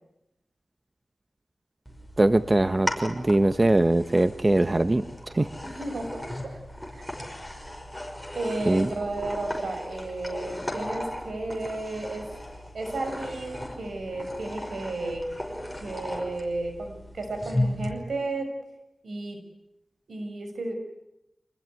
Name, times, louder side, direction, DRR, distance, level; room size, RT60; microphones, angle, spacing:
sound 1, 1.9-17.9, left 1 dB, 5° left, 5.6 m, -36 dB
voice 1, 2.2-5.0 5.3-5.5 8.7-8.9, right 2 dB, 30° right, 11 dB, 1.0 m, -21 dB
voice 2, 5.6-6.6 7.0-7.1 8.3-12.3 12.7-15.2 15.8-18.5 19.0-19.4 20.1-20.7, right 2 dB, 90° right, 5 dB, 6.3 m, -33 dB
26.0 x 20.5 x 9.6 m, 0.89 s
wide cardioid pair, 60°, 0 cm